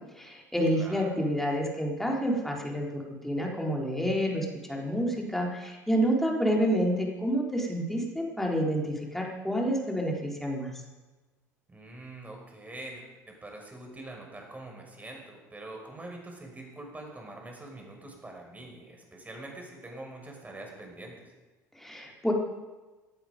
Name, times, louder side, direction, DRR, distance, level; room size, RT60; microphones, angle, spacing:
voice 1, 0.2-10.7 21.8-22.3, equal, 5° left, -1 dB, 4.0 m, -29 dB
voice 2, 0.7-1.1 11.7-21.3, right 2 dB, 15° right, 1 dB, 5.9 m, -44 dB
19.0 x 11.5 x 5.2 m, 1.2 s
hypercardioid pair, 70°, 9 cm